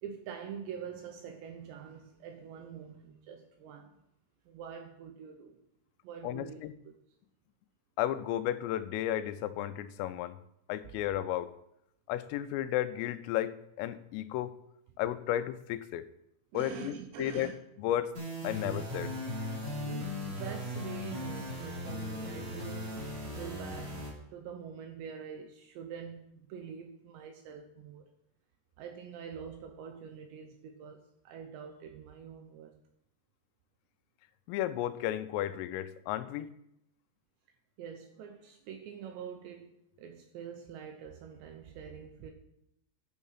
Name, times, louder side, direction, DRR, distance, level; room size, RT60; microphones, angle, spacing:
voice 1, 0.0-4.0 4.5-5.6 6.0-6.9 16.5-17.5 18.4-18.6 19.8-24.0 24.3-28.1 28.8-32.7 37.8-42.3, right 7 dB, 80° right, 2.6 m, -45 dB
voice 2, 6.2-6.7 8.0-10.4 10.7-11.5 12.1-14.5 15.0-16.1 16.5-17.5 17.8-18.1 18.4-19.1 34.5-36.5, left 12 dB, 90° left, 3.3 m, -33 dB
sound 1, 18.1-24.1, left 1 dB, 35° right, 3.8 m, -38 dB
12.0 x 6.4 x 5.6 m
omnidirectional pair, 5.8 m